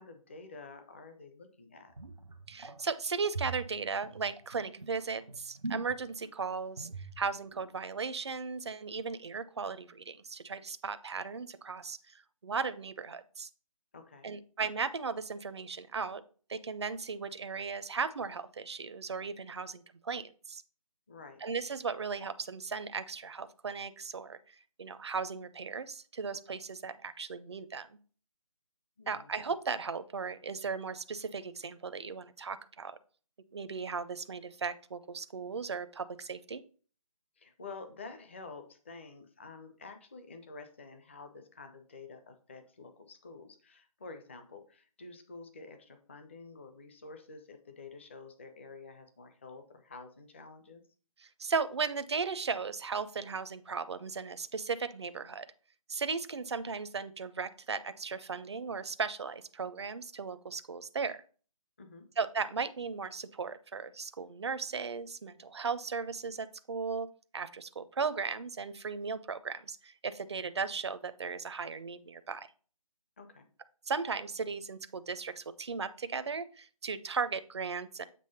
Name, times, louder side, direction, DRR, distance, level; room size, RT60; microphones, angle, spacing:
voice 1, 0.0-1.9 13.9-14.4 21.1-21.4 29.0-29.3 37.4-50.8 61.8-62.1 73.2-73.5, left 4 dB, 20° left, 7 dB, 0.5 m, -49 dB
sound 1, 1.9-2.8 3.2-6.4 6.8-7.2 7.5-7.6, right 3 dB, 90° right, 1.1 m, -42 dB
voice 2, 2.5-13.5 14.2-16.2 16.5-20.6 21.4-28.0 29.1-33.0 33.5-36.6 51.2-55.5 55.9-61.2 62.2-67.1 67.3-72.5 73.9-78.0, right 5 dB, 45° right, 13 dB, 0.5 m, -36 dB
7.6 x 3.0 x 5.5 m, 0.41 s
figure-of-eight pair, 155°, 19 cm